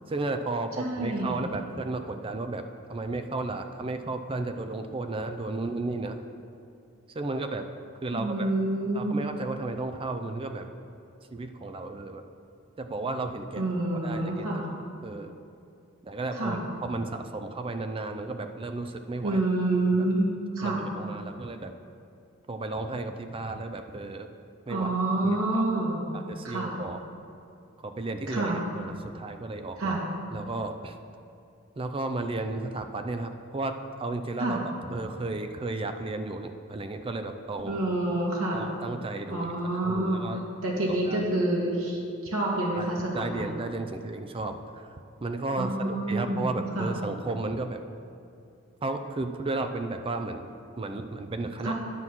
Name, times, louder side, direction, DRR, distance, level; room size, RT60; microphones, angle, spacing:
voice 1, 0.1-2.6 2.9-6.2 7.2-7.7 8.0-8.5 8.9-10.7 11.3-12.2 12.8-13.6 14.0-14.6 15.0-15.3 16.0-19.5 19.9-20.1 20.6-21.7 22.5-24.3 24.7-24.9 25.2-25.6 26.1-27.0 27.8-30.0 30.3-31.0 31.8-34.6 34.8-37.8 38.5-39.5 39.8-40.4 41.1-41.2 42.8-44.9 45.2-47.8 48.8-51.7, right 2 dB, 25° right, 7 dB, 0.4 m, -33 dB
voice 2, 0.8-1.4 8.1-9.2 13.6-14.6 16.4-16.6 19.2-20.3 20.6-20.8 24.7-26.1 26.4-26.7 28.3-28.6 29.8-30.0 34.4-34.6 37.7-38.6 39.3-40.3 40.6-42.0 42.3-43.5 45.6-46.5 46.7-46.9 51.6-51.7, right 2 dB, 90° right, -3 dB, 1.8 m, -27 dB
9.9 x 5.6 x 6.1 m, 2.5 s
head